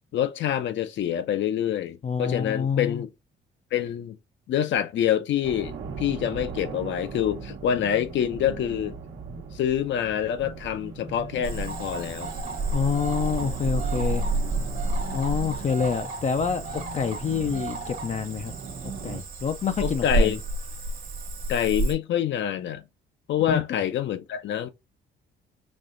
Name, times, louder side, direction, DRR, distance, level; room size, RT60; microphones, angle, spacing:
voice 1, 0.1-3.1 3.7-4.2 4.5-9.0 9.5-12.3 19.8-20.4 21.5-22.8 23.3-24.7, left 10 dB, 70° left, 0.7 m, -26 dB
voice 2, 2.0-3.0 12.7-14.2 15.1-18.5 19.0-20.4 23.5-23.6, left 6 dB, 35° left, 0.4 m, -27 dB
sound 1, 5.4-19.2, right 5 dB, 75° right, 1.1 m, -39 dB
Cricket / Frog, 11.4-21.9, right 2 dB, 45° right, 1.2 m, -30 dB
5.3 x 2.9 x 2.5 m
cardioid pair, 90°, 20 cm